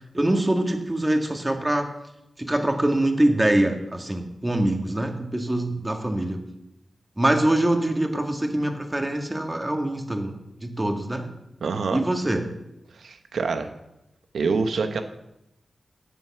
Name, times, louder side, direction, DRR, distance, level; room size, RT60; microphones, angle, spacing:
voice 1, 0.1-1.9 2.4-6.4 7.2-10.3 10.6-11.3 11.9-12.5, right 1 dB, 20° right, 4 dB, 1.9 m, -24 dB
voice 2, 11.6-12.0 13.0-13.7 14.3-15.0, right 4 dB, 80° right, 7 dB, 1.1 m, -25 dB
10.5 x 7.6 x 6.0 m, 0.86 s
cardioid pair, 45°, 0 cm